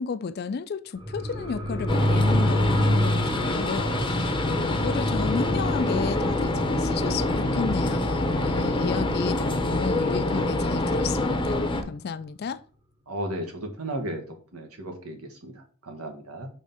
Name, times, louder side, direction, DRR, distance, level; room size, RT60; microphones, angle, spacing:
voice 1, 0.0-11.6 11.9-12.6, left 5 dB, 45° left, 0.3 m, -32 dB
sound 1, 1.0-10.1 10.4-10.5, equal, 20° right, 0.9 m, -28 dB
sound 2, 1.9-11.8, left 2 dB, 20° left, 0.7 m, -26 dB
voice 2, 4.4-4.8 13.1-14.2 14.5-16.5, right 1 dB, 85° right, 1.4 m, -35 dB
4.9 x 3.6 x 5.5 m
head